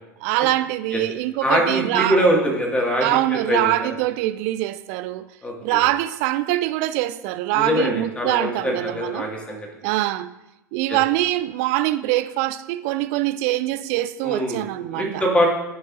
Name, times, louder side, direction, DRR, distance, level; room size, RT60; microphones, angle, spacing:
voice 1, 0.2-2.2 3.0-5.3 5.6-9.3 9.8-10.3 10.7-15.3, right 15 dB, 50° right, 0.4 m, -23 dB
voice 2, 1.4-3.2 3.5-3.7 5.4-5.8 7.5-9.6 14.2-14.6 14.9-15.5, equal, 10° left, 1.9 m, -22 dB
14.0 x 5.3 x 2.6 m
figure-of-eight pair, 80°, 10 cm